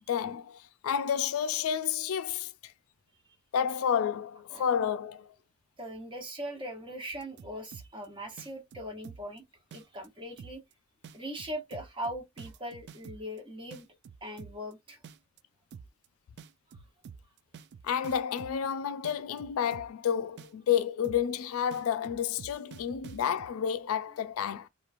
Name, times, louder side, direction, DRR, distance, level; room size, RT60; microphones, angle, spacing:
voice 1, 0.1-2.5 3.5-5.3 17.8-24.7, left 8 dB, 80° left, 0.4 m, -30 dB
voice 2, 5.8-9.4 9.7-10.6 11.1-13.9 14.2-15.0, equal, 25° right, 0.9 m, -40 dB
sound 1, 7.1-8.1 8.4-9.4 9.7-10.1 10.4-10.7 11.0-13.4 13.7-14.7 15.0-15.4 15.7-16.1 16.4-18.7 19.0-20.1 20.4-20.7 21.0-21.4 21.7-23.5, right 6 dB, 55° right, 0.3 m, -48 dB
2.9 x 2.4 x 2.5 m
head